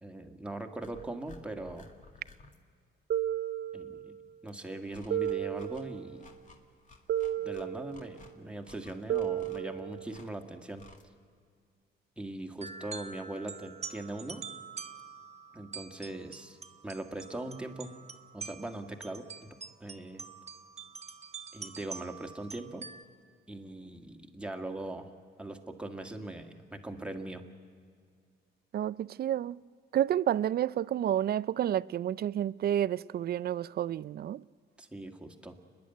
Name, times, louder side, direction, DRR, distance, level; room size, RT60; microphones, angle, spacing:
voice 1, 0.0-1.9 3.7-4.1 4.4-6.2 7.4-10.9 12.2-14.4 15.5-16.6 16.8-17.9 18.3-20.2 21.5-22.9 23.5-25.1 25.4-27.4 34.8-35.6, right 2 dB, 5° right, 2.0 m, -40 dB
sound 1, 0.8-2.6 4.5-11.0, left 3 dB, 40° left, 2.0 m, -56 dB
sound 2, 3.1-4.3 5.1-6.3 7.1-8.3 9.1-10.3, right 11 dB, 85° right, 0.9 m, -34 dB
sound 3, 12.6-23.0, right 5 dB, 35° right, 1.0 m, -45 dB
voice 2, 28.7-29.6 29.9-34.4, right 11 dB, 50° right, 0.4 m, -30 dB
29.5 x 10.5 x 9.2 m
cardioid pair, 90°, 20 cm